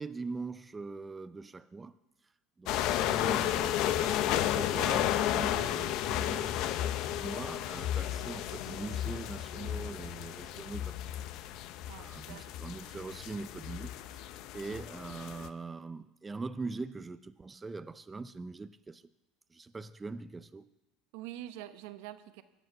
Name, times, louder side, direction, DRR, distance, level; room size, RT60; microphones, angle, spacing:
voice 1, 0.0-1.9 2.6-6.7 7.2-11.3 11.6-19.0 19.5-20.7, right 3 dB, 15° right, 0.4 m, -42 dB
sound 1, 2.7-15.5, left 12 dB, 60° left, 0.7 m, -33 dB
voice 2, 11.9-12.4 21.1-22.4, right 13 dB, 75° right, 0.9 m, -45 dB
21.0 x 8.1 x 5.6 m
supercardioid pair, 120°, 0 cm